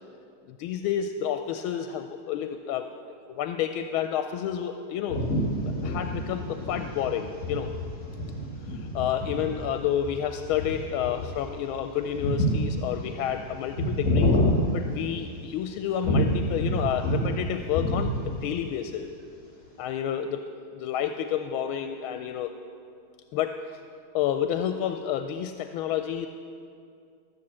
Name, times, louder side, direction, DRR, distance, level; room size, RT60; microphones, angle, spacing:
voice 1, 0.5-2.9 3.3-5.2 5.8-7.7 8.7-14.4 14.7-19.1 19.8-20.5 20.7-22.6 23.3-23.6 24.1-26.3, left 9 dB, 90° left, 7 dB, 1.4 m, -30 dB
sound 1, 5.1-15.5 16.0-17.4 17.6-18.5, left 1 dB, 40° left, 2.8 m, -28 dB
13.5 x 7.2 x 7.5 m, 2.3 s
omnidirectional pair, 2.2 m